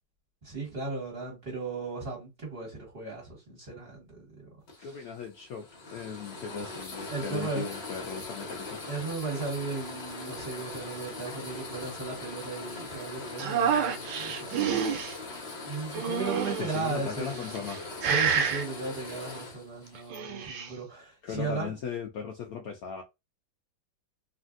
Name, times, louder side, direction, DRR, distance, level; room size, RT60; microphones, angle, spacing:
voice 1, 0.4-4.5 4.8-5.1 7.1-7.7 8.8-15.0 15.6-17.6 18.0-21.8, right 4 dB, 30° right, 1.4 m, -36 dB
sound 1, 4.7-20.2, left 3 dB, 40° left, 1.0 m, -41 dB
voice 2, 4.8-8.8 16.6-17.8 21.2-23.0, left 6 dB, 90° left, 0.8 m, -38 dB
sound 2, 13.4-15.1 15.9-16.8 17.4-17.8 18.0-18.6 20.0-20.7, right 7 dB, 80° right, 1.4 m, -28 dB
3.2 x 2.6 x 2.5 m
omnidirectional pair, 2.1 m